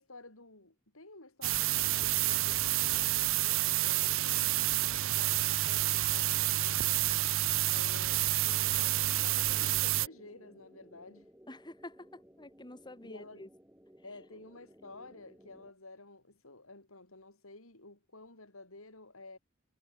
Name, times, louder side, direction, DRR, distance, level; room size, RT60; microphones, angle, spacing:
voice 1, 0.0-4.4 5.0-7.2 7.7-11.3 13.0-13.5 14.0-19.4, left 2 dB, 80° left, 7.9 m, -52 dB
sound 1, 1.4-10.1, right 15 dB, 70° right, 0.8 m, -29 dB
sound 2, 8.5-15.7, equal, 10° right, 7.2 m, -59 dB
voice 2, 11.5-13.5, left 1 dB, 20° left, 2.5 m, -48 dB
head